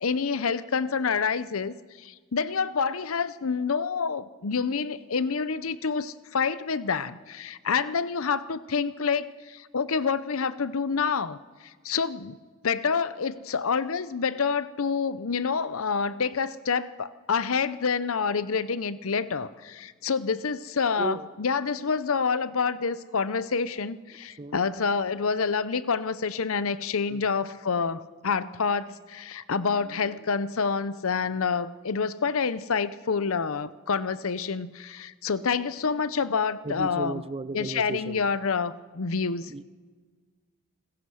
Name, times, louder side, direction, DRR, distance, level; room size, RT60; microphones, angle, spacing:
voice 1, 0.0-11.4 11.8-12.4 12.6-37.2 37.5-39.5, left 5 dB, 65° left, 0.7 m, -28 dB
voice 2, 21.0-21.3 24.4-24.6 27.1-27.3 29.5-30.1 36.6-38.3 39.5-39.6, right 3 dB, 25° right, 0.5 m, -35 dB
27.0 x 15.0 x 6.4 m
head